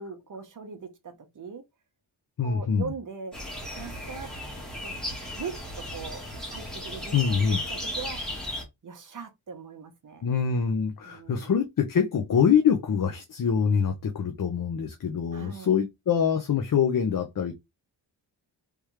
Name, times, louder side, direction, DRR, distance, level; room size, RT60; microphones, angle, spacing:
voice 1, 0.0-1.6 2.4-3.3 3.7-4.3 4.8-4.9 5.4-8.3 8.8-10.3 11.0-11.5 15.3-15.7, right 5 dB, 40° right, 0.9 m, -40 dB
voice 2, 2.4-2.9 7.1-7.6 10.2-17.5, left 7 dB, 45° left, 0.7 m, -25 dB
sound 1, 3.3-8.6, equal, ahead, 1.4 m, -35 dB
3.4 x 3.2 x 3.2 m
wide cardioid pair, 145°, 46 cm